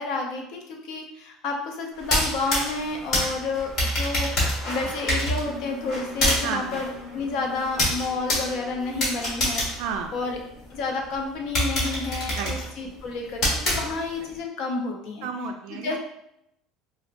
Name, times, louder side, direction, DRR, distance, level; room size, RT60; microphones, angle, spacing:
voice 1, 0.0-9.6 10.1-10.4 10.7-15.3 15.7-16.0, left 3 dB, 55° left, 1 dB, 0.7 m, -30 dB
sound 1, 2.0-10.7 11.1-11.2 11.5-14.3, equal, 35° left, 1.2 m, -27 dB
Alarm, 5.4-12.6, left 4 dB, ahead, 1.3 m, -42 dB
voice 2, 6.4-6.8 9.8-10.2 12.3-12.5 15.2-16.0, right 6 dB, 75° right, 4 dB, 0.3 m, -32 dB
4.3 x 2.1 x 2.5 m, 0.78 s
cardioid pair, 165°, 0 cm